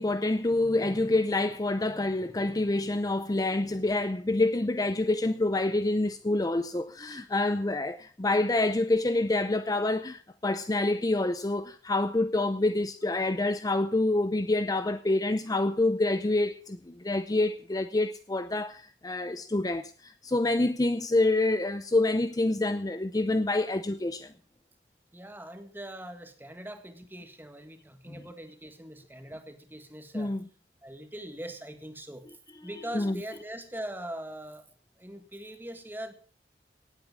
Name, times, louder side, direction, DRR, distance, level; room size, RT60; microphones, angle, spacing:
voice 1, 0.0-24.3 28.1-28.2 30.1-30.4 32.9-33.2, left 2 dB, 20° left, 0.5 m, -27 dB
voice 2, 25.1-30.4 30.8-32.3 32.6-34.7 35.0-36.1, right 1 dB, 10° right, 1.8 m, -42 dB
17.5 x 8.4 x 5.9 m
head